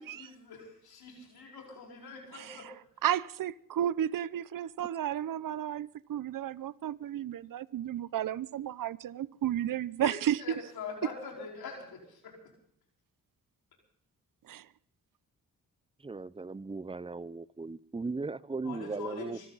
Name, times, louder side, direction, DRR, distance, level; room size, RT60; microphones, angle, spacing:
voice 1, 0.1-2.7 10.0-10.1 10.4-12.3 18.6-19.5, left 5 dB, 80° left, 4.8 m, -43 dB
voice 2, 2.3-2.7 3.0-10.4 14.5-14.7, right 11 dB, 65° right, 0.7 m, -33 dB
voice 3, 16.0-19.5, right 3 dB, 15° right, 0.6 m, -37 dB
24.5 x 14.5 x 4.0 m
cardioid pair, 70°, 36 cm